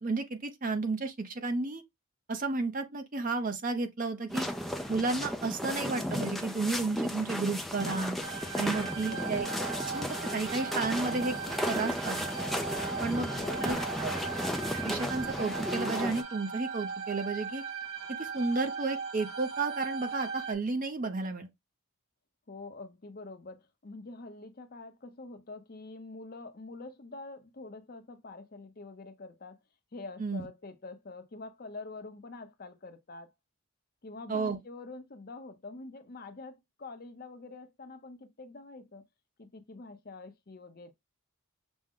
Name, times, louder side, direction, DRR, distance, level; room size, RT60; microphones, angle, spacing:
voice 1, 0.0-1.8 2.3-4.5 4.9-8.2 8.5-9.5 9.9-11.3 11.6-12.2 13.0-13.3 13.6-13.8 14.0-14.2 14.8-17.6 18.2-21.5 30.2-30.5 34.3-34.6, right 3 dB, 40° right, 0.6 m, -32 dB
sound 1, 4.3-16.2, equal, ahead, 0.4 m, -34 dB
sound 2, 8.2-20.5, right 5 dB, 65° right, 1.0 m, -38 dB
voice 2, 9.0-9.5 13.1-13.7 22.5-29.6 29.9-33.3 34.0-39.0 39.4-40.9, left 3 dB, 45° left, 0.6 m, -46 dB
6.1 x 2.1 x 3.6 m
head